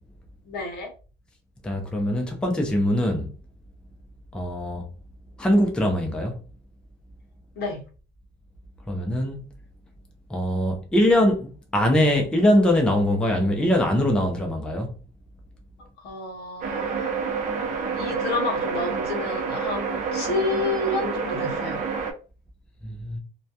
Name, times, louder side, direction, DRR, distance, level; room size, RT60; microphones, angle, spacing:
voice 1, 0.5-0.9 7.6-7.8 16.0-17.1 17.7-21.8, left 3 dB, 55° left, 0.7 m, -30 dB
voice 2, 1.6-3.3 4.3-4.9 5.4-6.4 8.9-9.4 10.3-14.9 22.8-23.2, left 1 dB, 5° left, 0.4 m, -22 dB
sound 1, 16.6-22.1, right 5 dB, 40° right, 0.6 m, -28 dB
2.2 x 2.2 x 2.7 m
cardioid pair, 135°, 20 cm